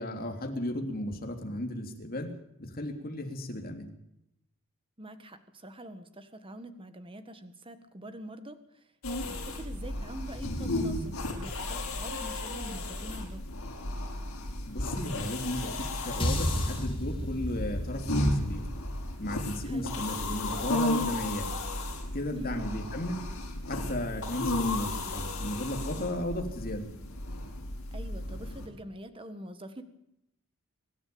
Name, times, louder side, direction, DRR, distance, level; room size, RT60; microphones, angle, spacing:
voice 1, 0.0-2.3 2.6-3.9 14.6-15.8 16.0-18.7 19.2-21.5 22.1-23.2 23.7-26.9, left 1 dB, 40° left, 3 dB, 3.3 m, -35 dB
voice 2, 5.0-8.9 9.3-13.4 19.6-19.9 22.3-22.7 27.9-29.8, right 1 dB, 25° right, 9 dB, 1.7 m, -45 dB
sound 1, 9.0-28.7, left 1 dB, 70° left, 6.6 m, -34 dB
sound 2, 16.2-20.5, left 1 dB, 25° left, 3.4 m, -34 dB
24.0 x 12.5 x 8.8 m, 0.80 s
head